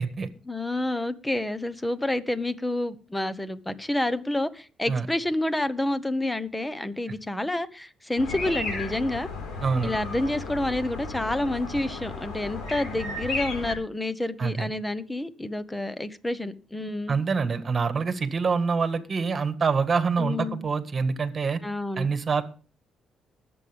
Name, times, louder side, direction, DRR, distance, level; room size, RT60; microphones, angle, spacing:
voice 1, 0.5-9.3 9.8-17.2 20.2-20.6 21.6-22.1, left 1 dB, 10° left, 14 dB, 1.1 m, -29 dB
sound 1, 8.2-13.7, left 3 dB, 75° left, 4.4 m, -34 dB
voice 2, 9.6-9.9 14.4-14.7 17.1-21.6 22.0-22.4, right 5 dB, 40° right, 10 dB, 1.7 m, -26 dB
20.0 x 7.9 x 3.5 m, 0.37 s
cardioid pair, 90°, 0 cm